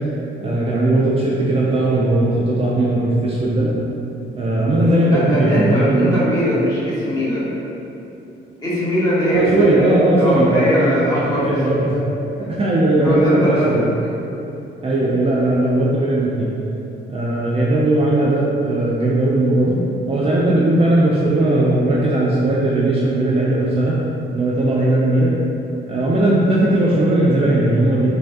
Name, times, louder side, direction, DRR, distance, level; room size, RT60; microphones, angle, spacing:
voice 1, 0.4-3.7 4.3-6.1 9.3-12.0 12.4-13.9 14.8-16.6 17.1-19.8 20.1-24.0 24.3-25.3 25.9-28.1, right 1 dB, 30° right, -6 dB, 0.3 m, -18 dB
voice 2, 5.1-7.5 8.6-11.8 12.4-12.5 12.9-14.2, equal, 20° left, -9 dB, 1.1 m, -21 dB
3.3 x 2.2 x 2.5 m, 2.9 s
cardioid pair, 90°, 20 cm